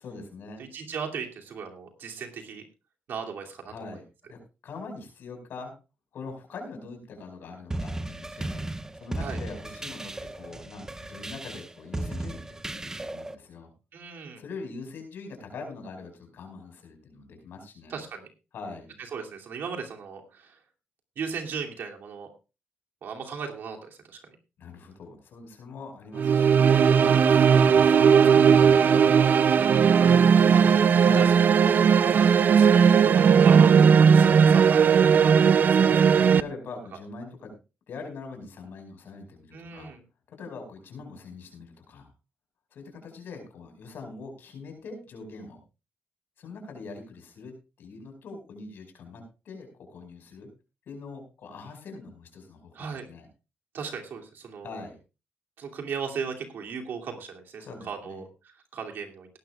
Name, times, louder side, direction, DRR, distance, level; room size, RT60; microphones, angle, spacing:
voice 1, 0.0-0.6 3.7-5.7 6.1-8.7 9.0-13.7 14.4-18.0 18.5-18.9 24.6-28.9 31.0-31.4 35.7-37.6 37.9-39.9 40.3-42.1 42.7-45.6 46.4-50.5 50.9-53.3 54.6-55.0 57.6-58.2, left 4 dB, 70° left, 4 dB, 5.1 m, -42 dB
voice 2, 0.6-2.6 3.1-3.7 9.2-9.4 13.9-14.4 17.9-18.3 19.1-20.6 21.2-22.3 23.0-24.2 30.5-31.7 32.0-35.6 39.5-40.0 52.7-53.1 53.7-54.8 55.6-59.3, right 6 dB, 70° right, 1 dB, 2.7 m, -37 dB
sound 1, 7.7-13.4, right 2 dB, 15° right, 0.8 m, -35 dB
sound 2, 26.1-36.4, right 7 dB, 55° right, 0.6 m, -18 dB
18.0 x 12.0 x 2.4 m, 0.30 s
cardioid pair, 85°, 4 cm